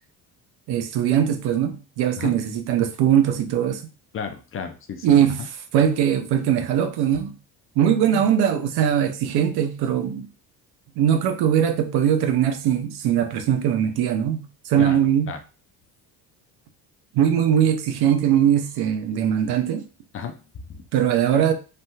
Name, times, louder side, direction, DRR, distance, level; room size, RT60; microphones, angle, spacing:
voice 1, 0.7-3.8 5.0-7.3 7.8-10.2 11.0-15.3 17.1-19.8 20.9-21.5, right 9 dB, 75° right, 0.6 m, -21 dB
voice 2, 4.1-5.5 8.1-8.3 14.8-15.0 15.3-15.4 20.1-20.8, left 6 dB, 35° left, 0.4 m, -33 dB
3.3 x 2.3 x 2.7 m
cardioid pair, 115°, 38 cm